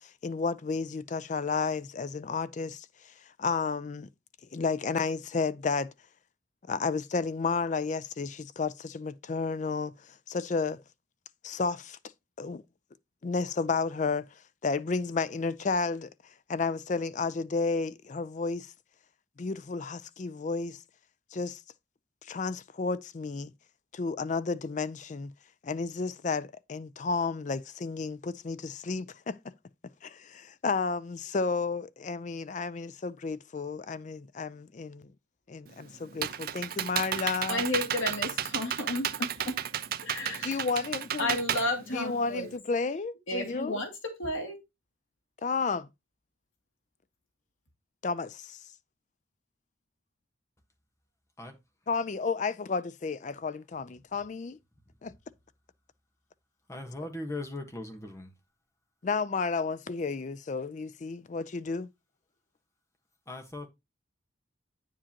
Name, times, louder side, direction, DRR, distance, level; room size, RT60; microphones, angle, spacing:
voice 1, 0.0-4.1 4.5-5.9 6.7-10.8 11.4-12.0 12.4-12.6 13.2-14.3 14.6-18.7 19.4-20.8 21.3-21.6 22.2-23.5 23.9-25.3 25.6-29.4 30.0-35.1 35.5-37.6 40.4-41.4 41.9-43.8 45.4-45.9 48.0-48.6 51.9-54.6 55.0-55.1 59.0-61.9, left 4 dB, 40° left, 0.4 m, -32 dB
Computer keyboard, 35.7-42.5, right 9 dB, 50° right, 0.5 m, -33 dB
voice 2, 37.5-39.6 40.0-40.6 41.2-42.5 43.3-43.9 44.2-44.6, left 1 dB, 85° left, 2.3 m, -32 dB
voice 3, 56.7-58.3 63.3-63.7, left 2 dB, 15° left, 1.2 m, -39 dB
8.8 x 7.4 x 2.9 m
head